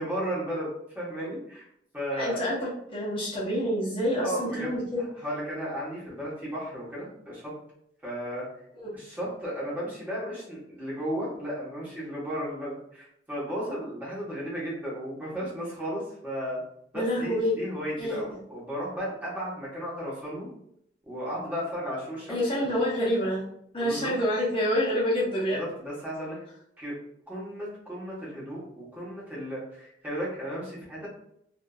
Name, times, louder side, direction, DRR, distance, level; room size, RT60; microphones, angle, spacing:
voice 1, 0.0-1.6 1.9-2.4 4.2-4.7 5.2-7.5 8.0-8.5 8.9-16.6 16.9-20.5 21.1-22.4 23.8-24.1 25.5-26.4 26.8-27.0 27.3-31.1, equal, 10° right, -8 dB, 1.0 m, -34 dB
voice 2, 2.2-5.0 16.9-17.5 18.0-18.2 22.3-23.4 23.7-25.6, equal, 30° left, -7 dB, 0.7 m, -27 dB
2.6 x 2.5 x 2.3 m, 0.72 s
head